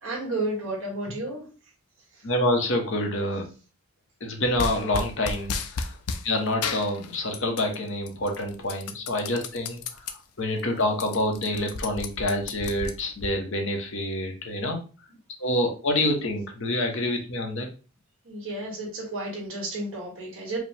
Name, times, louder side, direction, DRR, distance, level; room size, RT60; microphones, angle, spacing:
voice 1, 0.0-1.4 18.3-20.6, right 2 dB, 60° right, -3 dB, 2.0 m, -32 dB
voice 2, 2.2-3.4 4.2-5.9 6.2-9.8 10.4-14.8 15.4-17.7, left 1 dB, 55° left, 3 dB, 0.9 m, -27 dB
sound 1, 4.6-6.3 6.6-7.8 8.1-10.1 10.6-10.7 10.9-13.3, left 5 dB, 90° left, 0.5 m, -33 dB
4.9 x 2.2 x 3.4 m, 0.35 s
head